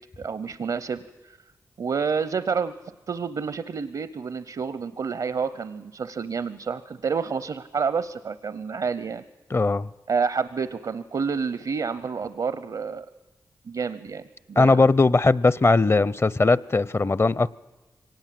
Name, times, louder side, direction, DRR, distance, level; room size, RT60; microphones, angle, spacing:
voice 1, 0.2-1.4 1.8-2.7 3.1-9.2 10.1-13.1 13.6-14.2 14.5-14.9, right 5 dB, 70° right, 14 dB, 0.8 m, -29 dB
voice 2, 9.5-9.9 14.6-17.5, left 3 dB, 35° left, 21 dB, 0.7 m, -19 dB
24.0 x 18.5 x 7.7 m, 1.1 s
cardioid pair, 40°, 7 cm